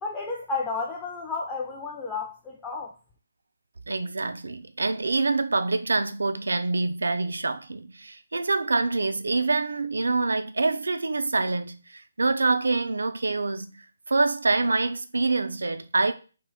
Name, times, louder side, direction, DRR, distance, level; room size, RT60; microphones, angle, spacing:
voice 1, 0.0-2.9, left 4 dB, 10° left, 0.4 m, -32 dB
voice 2, 3.9-13.8 14.1-16.1, right 3 dB, 80° right, 0.4 m, -26 dB
2.5 x 2.2 x 3.6 m
figure-of-eight pair, 150°, 0 cm